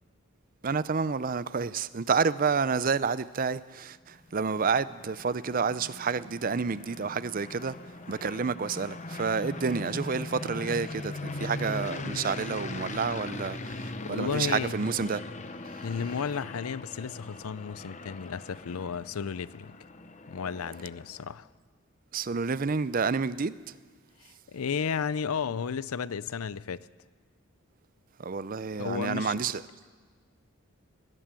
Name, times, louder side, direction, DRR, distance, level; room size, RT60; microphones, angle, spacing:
voice 1, 0.6-7.8 8.1-15.2 22.1-23.5 28.2-29.6, right 5 dB, 40° right, 0.5 m, -29 dB
sound 1, 4.2-21.3, left 2 dB, 35° left, 0.9 m, -40 dB
voice 2, 14.0-14.8 15.8-19.8 20.3-21.5 24.2-26.9 28.8-29.4, left 6 dB, 90° left, 0.5 m, -33 dB
19.5 x 18.5 x 7.6 m
head